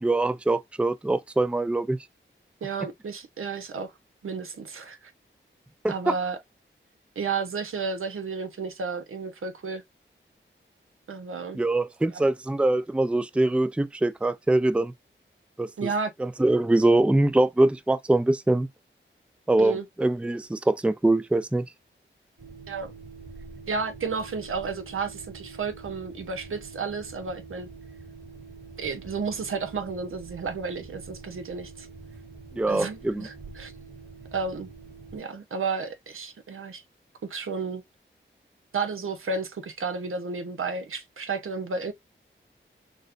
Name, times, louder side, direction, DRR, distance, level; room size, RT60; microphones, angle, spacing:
voice 1, 0.0-2.0 5.8-6.2 11.5-14.9 15.6-15.9 16.2-18.7 19.5-21.6 32.5-33.3, right 2 dB, 5° right, 0.4 m, -23 dB
voice 2, 2.6-3.9 4.2-5.1 5.9-6.4 7.2-9.8 11.1-11.6 12.1-12.3 15.8-16.1 19.6-19.8 22.7-22.9 23.7-27.7 28.8-31.9 32.7-33.7 34.3-34.7 35.1-36.8 37.2-37.8 38.7-41.9, right 4 dB, 85° right, 0.9 m, -32 dB
sound 1, 22.4-35.2, right 4 dB, 55° right, 2.7 m, -45 dB
6.3 x 2.2 x 2.5 m
wide cardioid pair, 65°, 21 cm